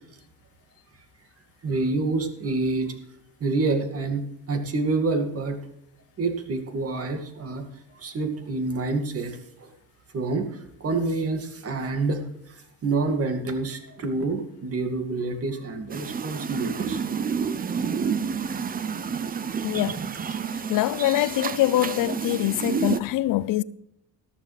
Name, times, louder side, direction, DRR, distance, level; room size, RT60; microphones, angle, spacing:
voice 1, 1.6-3.0 3.4-5.6 6.2-7.7 7.9-9.7 10.1-17.0, right 3 dB, 40° right, 2.3 m, -27 dB
sound 1, 15.9-23.0, right 6 dB, 25° right, 0.6 m, -29 dB
voice 2, 19.6-20.0 20.7-23.6, left 15 dB, 60° left, 0.6 m, -24 dB
14.0 x 13.0 x 3.4 m
cardioid pair, 110°, 36 cm